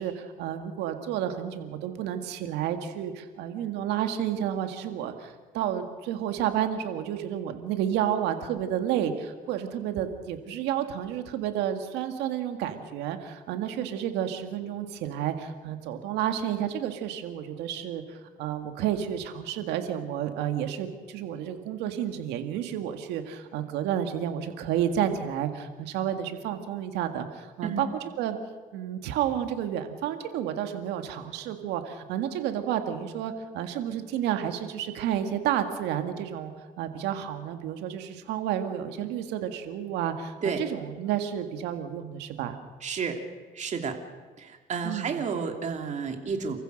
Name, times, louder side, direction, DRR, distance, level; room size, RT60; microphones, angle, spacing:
voice 1, 0.0-27.9 28.2-28.4 28.7-36.5 36.8-42.6 44.8-45.2, right 10 dB, 90° right, 7 dB, 2.0 m, -31 dB
voice 2, 42.8-43.2 43.5-44.0 44.4-46.6, right 5 dB, 45° right, 4 dB, 2.8 m, -31 dB
28.5 x 15.0 x 6.5 m, 1.5 s
cardioid pair, 110°, 17 cm